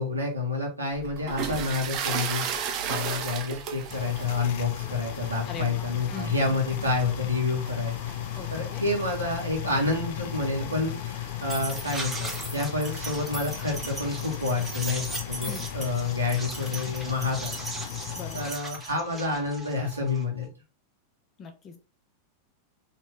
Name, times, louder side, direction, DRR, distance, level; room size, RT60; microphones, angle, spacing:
voice 1, 0.0-7.9 8.5-17.6 18.3-20.5, left 3 dB, 80° right, -1 dB, 1.7 m, -29 dB
sound 1, 0.9-15.9, right 7 dB, 40° right, 0.7 m, -38 dB
sound 2, 2.5-5.2 6.0-6.1 6.3-6.4 6.7-6.8 8.7-8.8 9.1-9.2 9.5-20.5, right 2 dB, 10° right, 1.2 m, -39 dB
sound 3, 3.9-18.5, left 13 dB, 50° left, 0.3 m, -35 dB
voice 2, 5.5-6.3 8.4-8.8 15.4-15.7 18.2-18.4 21.4-21.8, left 5 dB, 25° left, 5 dB, 0.9 m, -40 dB
4.3 x 3.2 x 3.5 m, 0.30 s
figure-of-eight pair, 90°, 0 cm